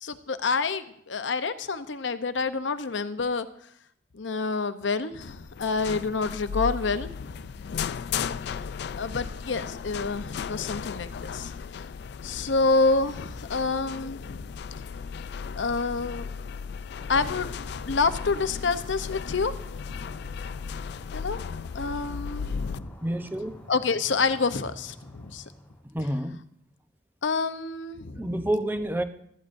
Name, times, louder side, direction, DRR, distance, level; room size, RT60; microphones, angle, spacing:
voice 1, 0.0-3.5 4.1-7.5 9.0-11.5 12.2-14.5 15.6-16.3 17.1-17.5 17.8-19.5 19.8-20.0 21.1-21.4 21.7-22.9 23.7-25.4 27.2-28.4, left 4 dB, 75° left, 0.7 m, -28 dB
sound 1, 5.2-22.8, left 6 dB, 60° left, 0.3 m, -36 dB
sound 2, 16.9-25.8, equal, 10° left, 3.6 m, -49 dB
voice 2, 23.0-23.6 25.9-26.4 28.2-29.0, right 1 dB, 10° right, 0.7 m, -28 dB
17.0 x 13.5 x 2.6 m
head